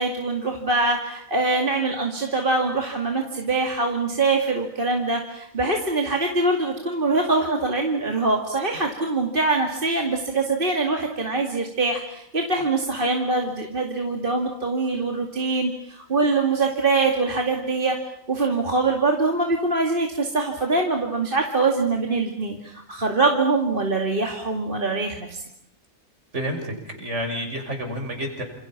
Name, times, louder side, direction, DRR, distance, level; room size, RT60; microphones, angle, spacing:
voice 1, 0.0-18.0 18.3-25.4, right 3 dB, 40° right, 2 dB, 2.5 m, -23 dB
voice 2, 26.3-28.4, equal, 55° right, 4 dB, 6.2 m, -29 dB
28.5 x 28.0 x 6.0 m, 0.73 s
omnidirectional pair, 1.4 m